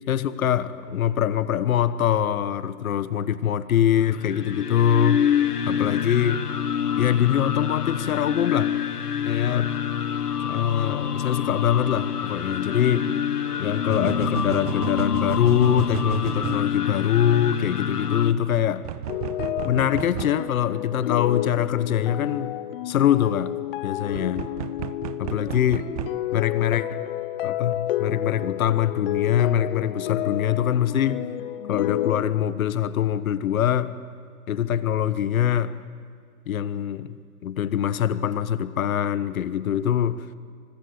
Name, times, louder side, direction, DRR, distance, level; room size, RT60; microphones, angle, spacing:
voice 1, 0.1-5.3 5.7-6.5 7.0-8.8 9.2-9.8 10.4-13.2 13.6-18.8 19.6-22.6 22.8-23.5 23.8-24.5 25.2-25.9 26.3-27.1 27.4-31.3 31.7-33.9 34.5-35.8 36.5-37.2 37.4-40.3, left 10 dB, 60° left, 15 dB, 1.3 m, -23 dB
sound 1, 4.1-18.3, left 8 dB, 80° left, 1.4 m, -27 dB
sound 2, 12.0-12.1 13.9-16.7 18.8-20.4 24.1-26.2, right 13 dB, 25° right, 0.5 m, -33 dB
sound 3, 19.1-32.2, left 14 dB, 35° left, 0.8 m, -30 dB
25.5 x 20.5 x 8.1 m, 2.1 s
figure-of-eight pair, 120°, 46 cm